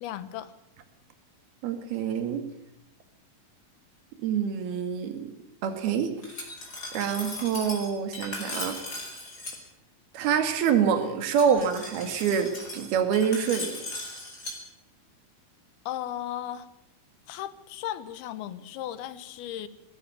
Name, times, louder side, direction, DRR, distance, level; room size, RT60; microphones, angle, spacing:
voice 1, 0.0-0.5 15.9-16.7 17.3-19.7, left 12 dB, 85° left, 15 dB, 3.1 m, -36 dB
voice 2, 1.6-2.4 4.2-5.3 5.6-6.1 6.9-8.8 10.1-13.7, right 7 dB, 80° right, 7 dB, 3.9 m, -26 dB
Glass, 6.2-9.6 11.2-14.6, left 2 dB, 25° left, 5.5 m, -38 dB
20.0 x 16.0 x 9.1 m, 0.80 s
omnidirectional pair, 4.4 m